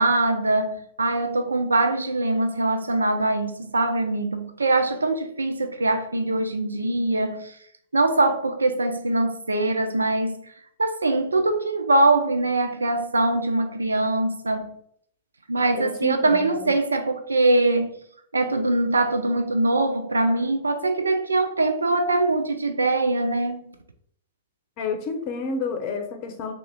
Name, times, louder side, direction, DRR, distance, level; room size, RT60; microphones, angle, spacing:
voice 1, 0.0-7.5 7.9-10.4 10.8-14.7 15.5-18.0 18.3-23.8, right 2 dB, 80° right, 0.4 m, -22 dB
voice 2, 15.7-16.7 24.8-26.5, left 4 dB, 40° left, 0.7 m, -30 dB
3.5 x 2.4 x 3.5 m
figure-of-eight pair, 100°, 0 cm